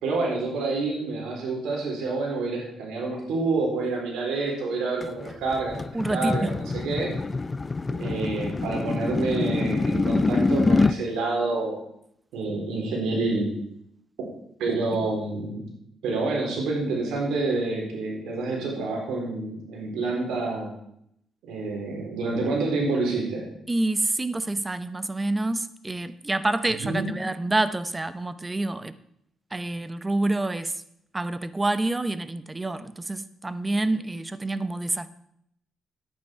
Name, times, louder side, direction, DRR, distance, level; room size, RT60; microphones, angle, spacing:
voice 1, 0.0-7.1 7.9-11.8 12.3-13.5 14.6-15.7 16.0-20.7 21.4-23.5 26.8-27.1, right 3 dB, 85° right, -1 dB, 3.9 m, -28 dB
sound 1, 5.0-11.0, left 3 dB, 25° left, 0.4 m, -26 dB
voice 2, 5.9-6.5 23.7-28.9 29.5-30.7 31.1-35.1, right 2 dB, 20° right, 14 dB, 0.7 m, -27 dB
10.5 x 9.3 x 4.6 m, 0.72 s
cardioid pair, 90°, 0 cm